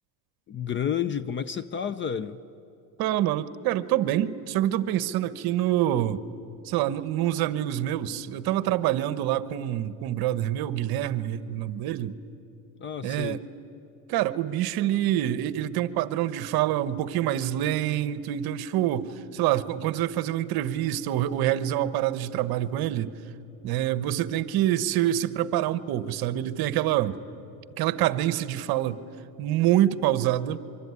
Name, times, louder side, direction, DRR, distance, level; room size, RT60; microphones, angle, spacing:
voice 1, 0.5-2.4 12.8-13.4, left 8 dB, 25° left, 15 dB, 0.6 m, -30 dB
voice 2, 3.0-6.2 6.6-12.1 13.0-13.5 14.1-23.1 23.6-27.2 27.8-29.0 29.4-30.6, right 12 dB, 50° right, 15 dB, 1.1 m, -26 dB
24.5 x 24.0 x 9.7 m, 2.9 s
supercardioid pair, 130°, 45 cm